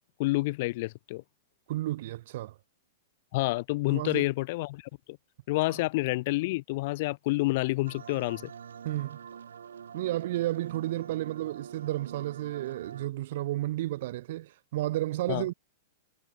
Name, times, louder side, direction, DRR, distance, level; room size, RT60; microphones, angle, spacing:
voice 1, 0.2-1.2 3.3-4.8 5.1-5.2 5.5-8.5 15.3-15.4, left 21 dB, 55° left, 0.4 m, -28 dB
voice 2, 1.7-2.5 3.9-4.3 5.7-5.8 8.8-9.2 9.9-15.5, right 15 dB, 60° right, 0.5 m, -32 dB
sound 1, 7.8-13.1, right 7 dB, 80° right, 4.6 m, -45 dB
hypercardioid pair, 110°, 0 cm